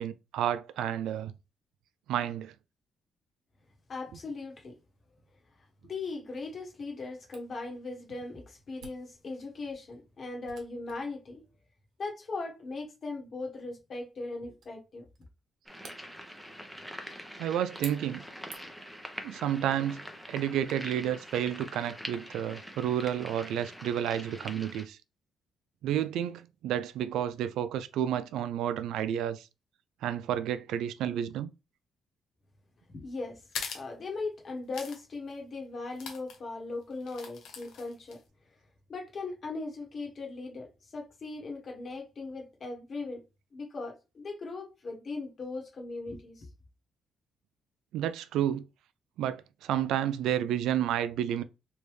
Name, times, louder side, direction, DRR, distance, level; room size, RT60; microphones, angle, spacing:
voice 1, 0.0-1.3 2.1-2.5 17.4-18.2 19.2-20.0 20.3-25.0 25.8-29.5 30.0-31.5 47.9-48.6 49.2-51.4, right 10 dB, 85° right, 0.3 m, -31 dB
voice 2, 3.9-4.8 5.8-11.4 12.0-15.1 32.9-33.4 33.7-38.2 38.9-43.2 43.5-46.5, left 3 dB, 45° left, 1.3 m, -39 dB
Camera, 7.3-18.9, right 6 dB, 70° right, 1.0 m, -54 dB
sound 1, 15.7-24.8, equal, ahead, 0.8 m, -44 dB
sound 2, 33.5-33.9 34.7-35.0 35.3-35.4 36.0-36.4 37.0-38.2, left 6 dB, 80° left, 0.9 m, -40 dB
3.3 x 2.5 x 3.1 m
cardioid pair, 90°, 0 cm